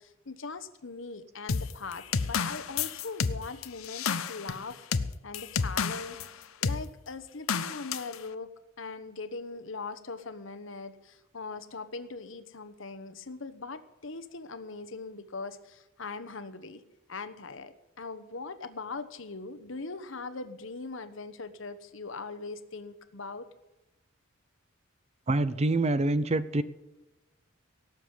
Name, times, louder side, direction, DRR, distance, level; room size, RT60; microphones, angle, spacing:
voice 1, 0.0-4.9 5.2-16.8 17.1-23.5, left 3 dB, 65° left, 11 dB, 1.1 m, -41 dB
sound 1, 1.5-6.3 6.6-6.8 7.5-8.2, left 5 dB, 90° left, 0.8 m, -30 dB
voice 2, 25.3-26.6, right 2 dB, 30° right, 14 dB, 0.6 m, -26 dB
18.0 x 7.2 x 8.2 m, 1.0 s
head